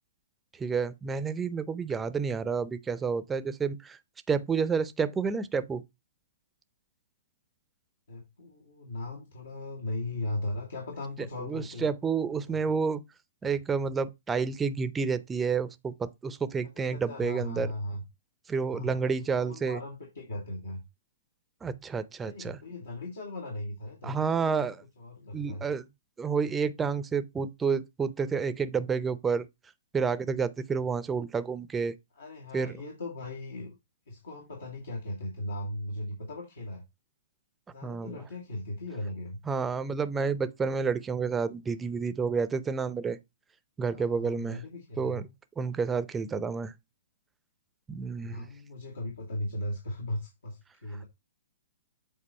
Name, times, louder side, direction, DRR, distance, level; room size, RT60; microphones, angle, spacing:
voice 1, 0.6-4.0 4.3-5.8 11.4-13.0 13.4-17.7 18.5-19.8 21.6-22.6 24.0-24.8 25.3-25.8 26.2-29.5 29.9-31.9 32.5-32.7 37.8-38.2 39.5-43.2 43.8-44.6 45.0-45.3 45.6-46.7 47.9-48.5, right 5 dB, 15° right, 0.5 m, -30 dB
voice 2, 8.1-11.9 12.3-12.6 16.7-18.0 18.7-19.0 19.4-20.8 22.2-24.7 25.0-25.6 32.2-33.8 34.1-36.8 37.7-39.4 43.8-45.2 48.2-51.0, left 1 dB, 85° left, 1.9 m, -38 dB
7.6 x 4.1 x 4.2 m
hypercardioid pair, 130°, 0 cm